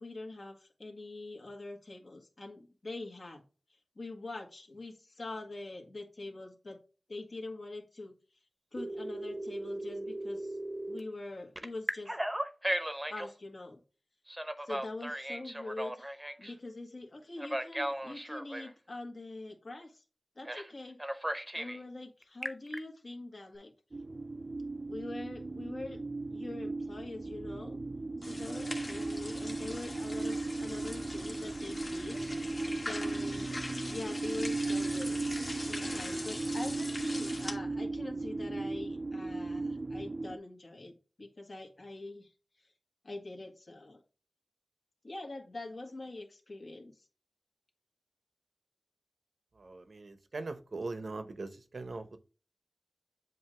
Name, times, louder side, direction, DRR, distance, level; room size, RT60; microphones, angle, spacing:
voice 1, 0.0-3.4 3.7-6.8 7.1-8.1 8.7-10.6 10.9-12.1 13.1-13.8 14.6-20.0 20.3-21.0 21.5-23.7 24.9-26.0 26.3-27.8 28.2-40.9 41.2-42.3 42.6-42.7 43.0-44.0 45.0-47.1, left 2 dB, 60° left, 2 dB, 1.6 m, -44 dB
Telephone, 8.8-11.0 11.6-13.3 14.3-16.5 17.4-18.7 20.5-20.7 21.0-21.8 22.2-22.8, right 1 dB, 15° right, 0.8 m, -36 dB
sound 1, 23.9-40.4, right 3 dB, 50° right, 0.4 m, -37 dB
sound 2, 28.2-37.5, left 1 dB, 40° left, 1.3 m, -42 dB
voice 2, 49.5-52.2, right 3 dB, 75° right, 9 dB, 0.8 m, -41 dB
7.7 x 2.6 x 4.9 m, 0.34 s
wide cardioid pair, 65°, 0 cm